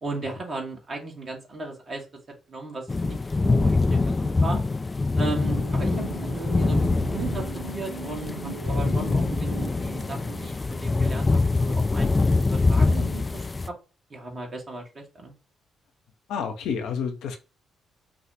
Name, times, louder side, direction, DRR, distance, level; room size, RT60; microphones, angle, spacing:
voice 1, 0.0-2.0 2.5-3.2 3.4-4.6 5.2-5.9 6.2-7.4 7.7-12.2 12.5-13.5 14.1-15.3, right 3 dB, 40° right, 1.7 m, -36 dB
sound 1, 2.9-13.7, left 3 dB, 25° left, 0.5 m, -24 dB
sound 2, 5.4-10.5, right 5 dB, 75° right, 0.4 m, -39 dB
voice 2, 16.3-17.4, left 6 dB, 60° left, 0.7 m, -29 dB
5.9 x 2.4 x 2.9 m
figure-of-eight pair, 40°, 0 cm